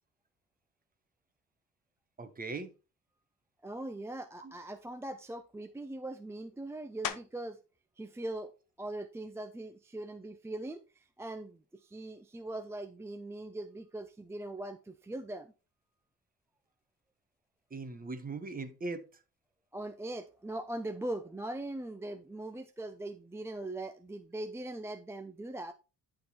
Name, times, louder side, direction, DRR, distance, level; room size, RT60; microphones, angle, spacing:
voice 1, 2.2-2.7 4.4-4.5 17.7-19.2, right 3 dB, 25° right, 1.1 m, -40 dB
voice 2, 3.6-7.6 8.0-8.5 8.8-15.5 19.7-25.7, right 1 dB, 10° right, 0.4 m, -41 dB
sound 1, 7.0-7.6 8.2-12.6 13.1-18.3 18.6-24.2, left 10 dB, 65° left, 0.9 m, -50 dB
11.0 x 3.8 x 4.3 m
cardioid pair, 130°, 35 cm